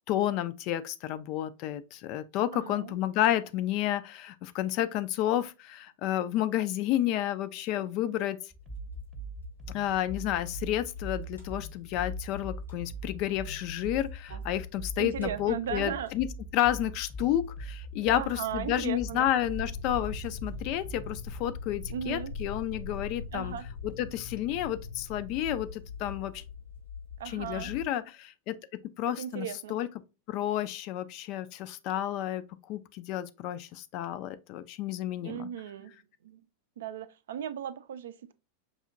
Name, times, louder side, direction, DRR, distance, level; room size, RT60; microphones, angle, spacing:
voice 1, 0.1-8.4 9.7-16.3 16.5-23.5 24.0-26.4 27.3-28.6 29.0-29.9 30.3-35.5, left 12 dB, 40° left, 0.3 m, -31 dB
voice 2, 2.5-3.0 14.3-14.5 15.0-16.1 18.0-19.3 21.9-22.3 23.3-23.7 27.2-27.7 29.1-29.7 35.2-36.0 36.2-36.5 36.8-38.3, right 9 dB, 60° right, 0.3 m, -37 dB
sound 1, 8.5-21.4, right 4 dB, 10° right, 0.7 m, -43 dB
Fire, 8.6-27.9, left 6 dB, 85° left, 1.6 m, -45 dB
sound 2, 19.5-27.0, left 3 dB, 65° left, 0.9 m, -42 dB
5.4 x 2.8 x 2.5 m
figure-of-eight pair, 90°, 0 cm